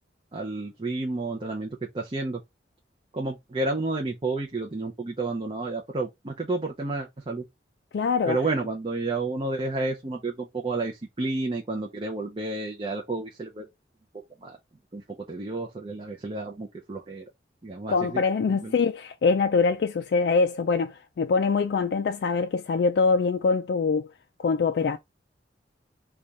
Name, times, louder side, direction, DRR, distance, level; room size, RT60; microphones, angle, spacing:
voice 1, 0.3-2.4 3.1-7.4 8.3-13.7 14.4-14.6 14.9-15.0 15.3-17.2 17.6-18.2 18.5-18.7, right 2 dB, 30° right, 0.5 m, -31 dB
voice 2, 7.9-8.4 17.9-24.1 24.4-25.0, left 4 dB, 60° left, 0.3 m, -24 dB
3.2 x 2.3 x 3.8 m
head